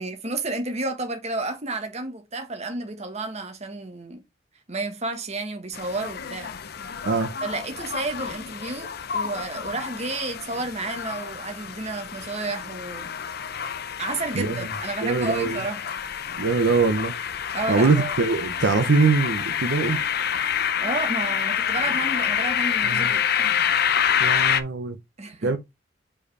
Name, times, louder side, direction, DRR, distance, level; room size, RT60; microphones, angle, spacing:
voice 1, 0.0-4.2 4.7-6.5 7.4-8.9 9.1-13.1 14.0-15.8 17.5-18.1 20.8-23.6 25.2-25.5, right 2 dB, 35° right, 1.4 m, -31 dB
sound 1, 5.7-24.6, left 8 dB, 55° left, 0.6 m, -27 dB
voice 2, 7.0-7.4 14.3-14.7 15.0-15.6 16.4-17.1 17.7-20.0 22.8-23.1 24.2-25.0 25.4-25.6, right 4 dB, 70° right, 0.7 m, -22 dB
5.0 x 4.9 x 4.8 m
head